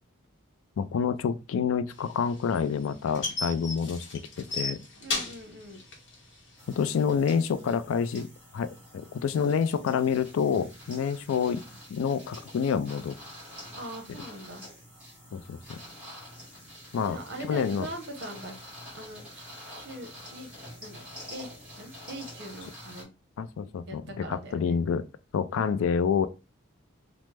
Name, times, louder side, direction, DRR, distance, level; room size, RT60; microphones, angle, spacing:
voice 1, 0.8-4.2 4.5-4.8 6.7-8.3 8.5-11.6 11.9-13.1 15.3-15.8 16.9-17.2 17.4-17.9 23.4-25.0 25.3-26.3, left 6 dB, 80° left, 0.3 m, -28 dB
sound 1, 2.0-7.0, left 3 dB, 60° left, 0.8 m, -35 dB
voice 2, 5.0-5.8 13.7-14.6 17.0-18.5 18.9-19.4 19.8-20.5 20.8-21.0 21.3-21.5 21.8-23.1 23.9-24.8 25.5-25.9, right 1 dB, 55° right, 0.8 m, -41 dB
sound 2, 6.6-23.0, equal, 5° right, 1.3 m, -47 dB
3.1 x 2.0 x 3.2 m
head